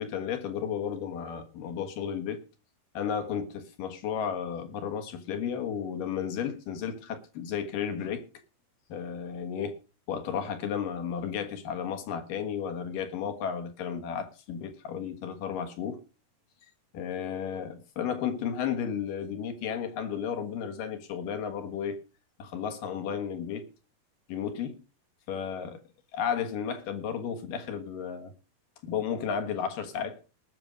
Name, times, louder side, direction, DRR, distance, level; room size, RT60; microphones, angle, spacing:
voice 1, 0.0-2.4 2.9-8.3 8.9-9.8 10.1-16.0 16.9-22.0 22.4-23.7 24.3-24.8 25.3-25.8 26.1-28.3 28.8-30.2, left 7 dB, 75° left, 3.2 m, -33 dB
19.0 x 6.7 x 5.2 m
omnidirectional pair, 4.0 m